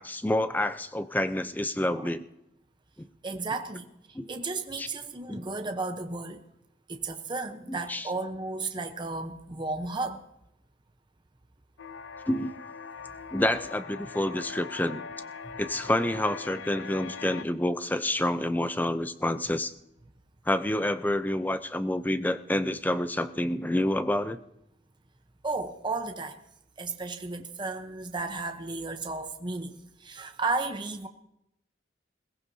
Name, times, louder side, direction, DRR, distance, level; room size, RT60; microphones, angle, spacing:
voice 1, 0.0-2.2 3.0-3.1 4.1-4.3 4.8-4.9 5.3-5.4 7.7-8.1 12.3-12.5 13.3-15.0 15.6-19.7 20.5-24.4, left 1 dB, 10° left, 0.5 m, -28 dB
voice 2, 3.2-3.9 4.3-6.4 6.9-10.2 14.3-14.4 15.4-15.6 25.4-26.4 26.8-31.1, right 3 dB, 25° right, 0.8 m, -34 dB
sound 1, 11.8-17.4, left 5 dB, 85° left, 0.7 m, -41 dB
21.5 x 17.0 x 2.8 m
head